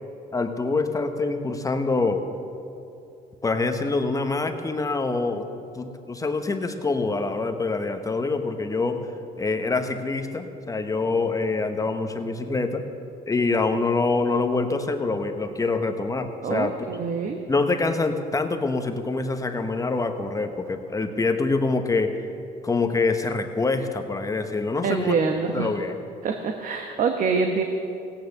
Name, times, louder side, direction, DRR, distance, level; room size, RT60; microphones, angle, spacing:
voice 1, 0.3-2.2 3.4-5.4 5.7-9.0 9.4-12.8 13.3-16.7 17.5-22.1 22.6-25.1 25.5-26.0, left 3 dB, 20° left, 6 dB, 1.0 m, -25 dB
voice 2, 16.4-17.4 24.8-25.7 26.2-27.6, right 5 dB, 50° right, 5 dB, 1.0 m, -25 dB
17.0 x 9.4 x 6.5 m, 2.7 s
cardioid pair, 110°, 17 cm